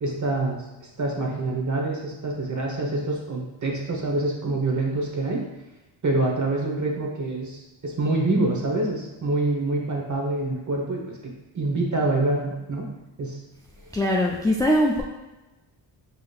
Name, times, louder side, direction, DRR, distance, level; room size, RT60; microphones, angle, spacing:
voice 1, 0.0-5.4 6.0-12.9 13.2-13.4, right 2 dB, 40° right, 0 dB, 1.0 m, -26 dB
voice 2, 13.9-15.0, equal, 10° left, -2 dB, 0.3 m, -21 dB
4.8 x 2.9 x 2.4 m, 1.1 s
cardioid pair, 75°, 46 cm